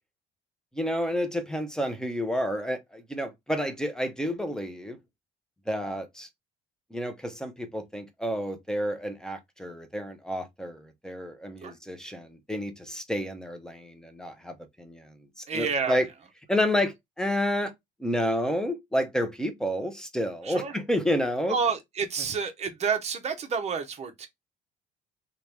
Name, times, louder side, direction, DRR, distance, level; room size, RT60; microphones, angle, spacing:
voice 1, 0.7-5.0 5.7-6.3 6.9-16.1 16.5-17.7 18.0-21.6, equal, 5° left, 0.7 m, -30 dB
voice 2, 15.5-16.0 20.4-20.8 21.5-24.3, right 5 dB, 40° right, 0.8 m, -29 dB
2.9 x 2.4 x 3.2 m
cardioid pair, 110°, 17 cm